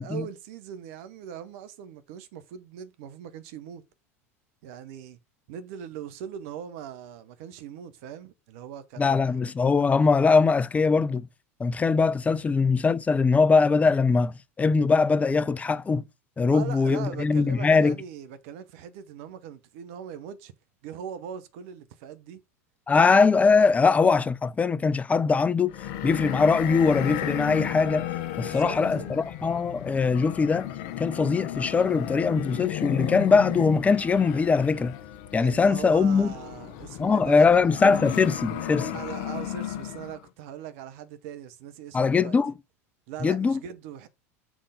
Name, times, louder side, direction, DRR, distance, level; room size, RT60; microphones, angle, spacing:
voice 1, 0.0-3.8 4.6-5.2 5.5-9.4 16.5-20.5 20.8-22.4 28.3-29.3 35.4-37.6 38.5-42.4 43.1-44.1, right 9 dB, 60° right, 1.1 m, -40 dB
voice 2, 9.0-11.3 11.6-14.3 14.6-16.0 16.4-18.0 22.9-25.7 26.0-28.0 28.4-30.7 31.0-35.0 35.3-36.3 37.0-38.9 41.9-42.5 43.2-43.6, left 4 dB, 15° left, 0.6 m, -21 dB
sound 1, 25.7-40.2, left 12 dB, 55° left, 0.8 m, -34 dB
6.2 x 3.7 x 5.1 m
hypercardioid pair, 80°, 8 cm